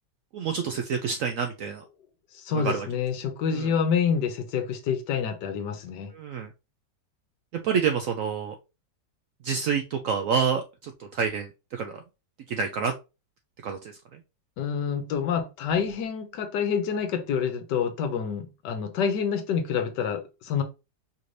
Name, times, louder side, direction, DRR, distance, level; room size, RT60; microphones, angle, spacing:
voice 1, 0.3-1.8 2.5-2.9 3.5-3.7 6.1-6.5 7.5-8.6 9.4-12.0 12.5-12.9 13.6-14.2, right 6 dB, 75° right, 0.7 m, -28 dB
voice 2, 2.3-6.1 14.6-20.6, left 7 dB, 80° left, 1.4 m, -27 dB
5.0 x 2.6 x 3.2 m
omnidirectional pair, 1.9 m